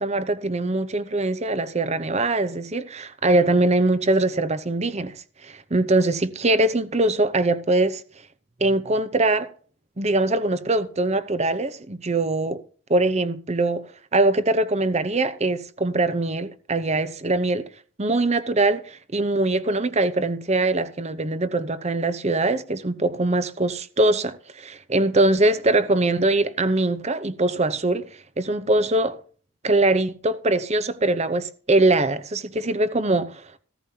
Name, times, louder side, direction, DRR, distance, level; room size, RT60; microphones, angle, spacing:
voice 1, 0.0-8.0 8.6-9.5 10.0-12.6 12.9-17.7 18.0-29.2 29.6-33.6, right 2 dB, 30° right, 0.8 m, -22 dB
15.5 x 14.0 x 2.8 m
head